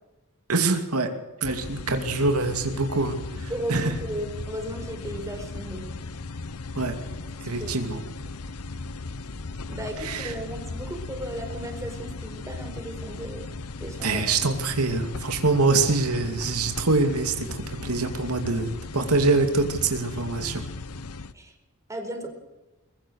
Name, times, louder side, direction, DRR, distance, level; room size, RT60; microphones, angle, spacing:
voice 1, 0.5-1.1 1.4-3.9 6.7-6.9 7.4-8.0 10.0-10.3 14.0-20.6, right 3 dB, 75° right, 5 dB, 2.5 m, -25 dB
sound 1, 1.4-21.3, left 3 dB, 85° left, 1.0 m, -37 dB
voice 2, 3.5-5.8 7.6-8.0 9.7-13.5 13.8-14.2 21.3-21.5 21.9-22.3, right 1 dB, 15° right, 3 dB, 4.5 m, -35 dB
22.5 x 22.0 x 6.5 m, 1.0 s
head